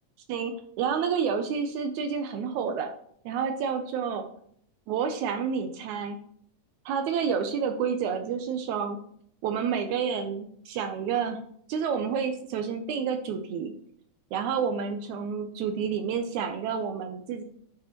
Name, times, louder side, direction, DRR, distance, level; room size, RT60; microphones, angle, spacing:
voice 1, 0.3-2.9 3.3-4.3 4.9-6.2 6.9-9.0 9.4-11.4 11.7-13.7 14.3-17.4, right 6 dB, 80° right, 6 dB, 1.8 m, -29 dB
9.9 x 5.9 x 2.9 m, 0.65 s
omnidirectional pair, 3.8 m